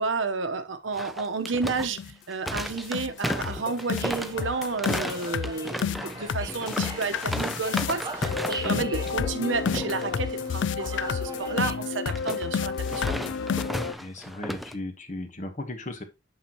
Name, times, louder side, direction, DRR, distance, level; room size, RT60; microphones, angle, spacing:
voice 1, 0.0-2.0 2.3-13.2, right 4 dB, 85° right, 1.0 m, -31 dB
sound 1, 0.9-8.8 9.1-9.4 9.7-10.0 12.1-14.7, equal, ahead, 0.4 m, -34 dB
sound 2, 1.5-1.6 2.0-2.1 2.5-2.6 2.9-13.9, left 6 dB, 65° left, 0.3 m, -30 dB
sound 3, 4.0-11.8, right 3 dB, 20° right, 0.9 m, -41 dB
voice 2, 13.9-16.0, left 2 dB, 40° left, 1.2 m, -36 dB
8.4 x 5.8 x 3.0 m
head